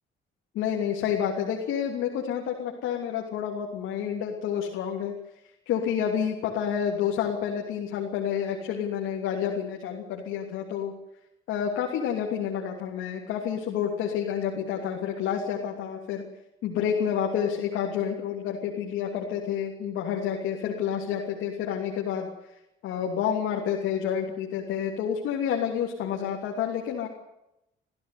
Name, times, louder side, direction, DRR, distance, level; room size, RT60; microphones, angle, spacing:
voice 1, 0.5-5.1 5.7-10.9 11.5-16.2 16.6-22.3 22.8-27.1, left 8 dB, 90° left, 0 dB, 3.1 m, -29 dB
21.5 x 15.0 x 9.5 m, 0.86 s
cardioid pair, 90°, 20 cm